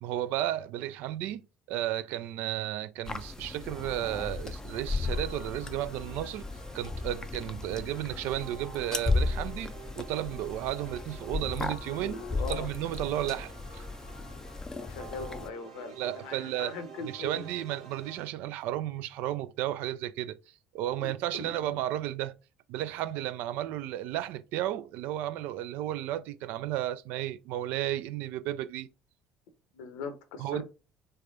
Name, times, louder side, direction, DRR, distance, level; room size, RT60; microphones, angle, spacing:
voice 1, 0.0-6.4 6.7-12.2 12.5-13.9 16.0-16.7 17.0-20.4 20.7-22.4 22.7-28.9 30.4-30.6, right 13 dB, 55° right, 0.3 m, -33 dB
sound 1, 3.1-15.5, left 3 dB, 15° left, 0.4 m, -35 dB
sound 2, 5.1-18.3, right 4 dB, 85° right, 0.9 m, -50 dB
voice 2, 11.9-12.7 13.2-13.4 14.7-17.4 21.0-21.8 29.7-30.6, left 4 dB, 65° left, 0.8 m, -41 dB
3.3 x 3.3 x 2.4 m
figure-of-eight pair, 60°, 4 cm